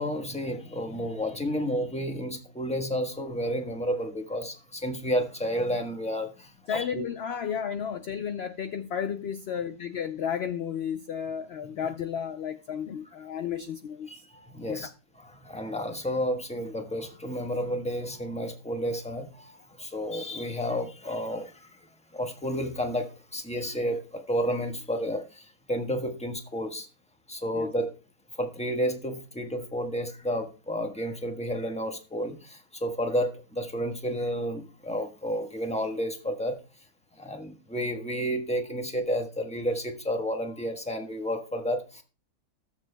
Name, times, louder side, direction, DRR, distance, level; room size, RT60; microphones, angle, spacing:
voice 1, 0.0-7.0 14.1-14.9 15.2-21.8 22.1-26.9 27.3-27.9 28.3-36.6 37.2-42.0, equal, 5° left, 1.1 m, -31 dB
voice 2, 6.7-14.2 14.7-14.9 27.5-27.7, left 8 dB, 65° left, 0.6 m, -33 dB
20.5 x 7.3 x 2.2 m
omnidirectional pair, 1.6 m